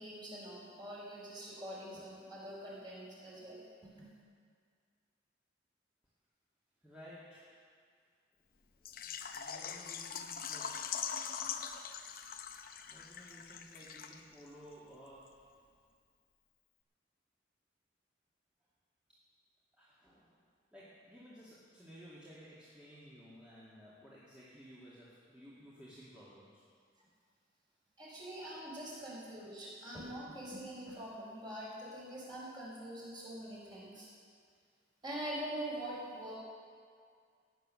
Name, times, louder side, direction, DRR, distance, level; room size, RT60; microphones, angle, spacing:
voice 1, 0.0-3.6 4.0-4.1 28.0-34.1 35.0-36.4, right 1 dB, 25° right, -6 dB, 5.0 m, -44 dB
voice 2, 6.8-7.7 8.8-10.8 11.4-11.5 12.9-15.3 19.7-20.4 20.7-26.6, equal, 5° right, -10 dB, 2.2 m, -55 dB
Water / Liquid, 8.9-14.5 14.7-14.8 15.3-15.4, left 7 dB, 50° left, 0.8 m, -42 dB
16.5 x 9.4 x 6.4 m, 2.1 s
head